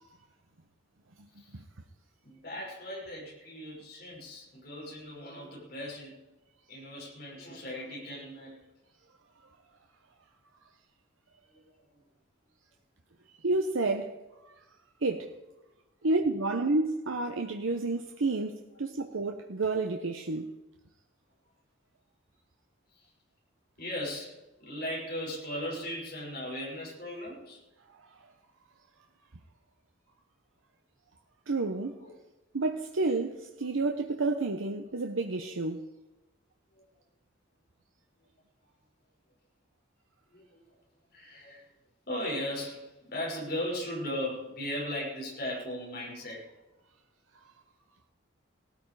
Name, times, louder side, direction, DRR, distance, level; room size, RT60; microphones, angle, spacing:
voice 1, 2.2-6.1 6.7-8.6 11.5-12.0 22.9-23.1 23.8-27.6 32.0-32.1 36.7-36.8 40.3-40.6 41.1-41.7 42.1-46.5, left 1 dB, 50° left, 6.1 m, -38 dB
voice 2, 13.4-14.2 15.0-15.4 16.0-20.5 31.5-32.0 32.5-35.9, right 3 dB, 85° right, 1.0 m, -30 dB
18.5 x 13.5 x 4.9 m
head